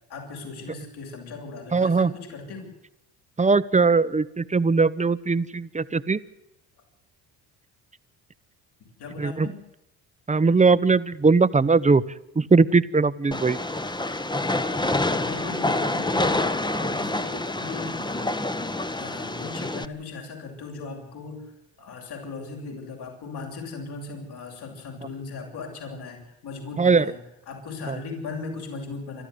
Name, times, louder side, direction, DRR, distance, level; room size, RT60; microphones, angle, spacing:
voice 1, 0.1-2.7 9.0-9.6 15.0-16.3 16.7-18.4 18.9-21.5 21.8-27.2 27.5-29.2, left 4 dB, 65° left, 2 dB, 7.5 m, -38 dB
voice 2, 1.7-2.1 3.4-6.2 9.2-9.5 10.3-12.0 12.3-13.6 26.8-27.0 27.9-28.0, right 4 dB, 15° right, 14 dB, 1.1 m, -20 dB
Train, 13.3-19.8, left 2 dB, 10° left, 1.3 m, -27 dB
26.5 x 13.0 x 8.1 m, 0.90 s
supercardioid pair, 80°, 42 cm